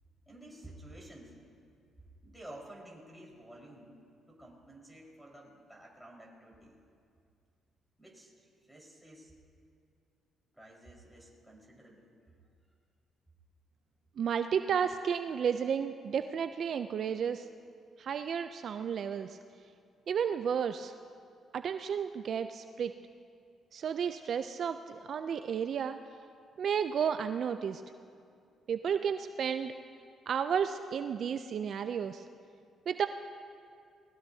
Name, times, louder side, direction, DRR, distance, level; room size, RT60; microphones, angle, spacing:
voice 1, 0.3-1.4 2.2-4.0 4.3-6.8 8.0-9.3 10.5-12.1, right 1 dB, ahead, -4 dB, 4.6 m, -52 dB
voice 2, 14.2-17.5 18.0-19.4 20.1-20.9 21.5-22.9 23.7-26.0 26.6-27.8 28.7-29.7 30.3-32.2 32.9-33.1, right 7 dB, 60° right, 9 dB, 0.4 m, -32 dB
21.0 x 19.5 x 2.8 m, 2.4 s
cardioid pair, 90°, 0 cm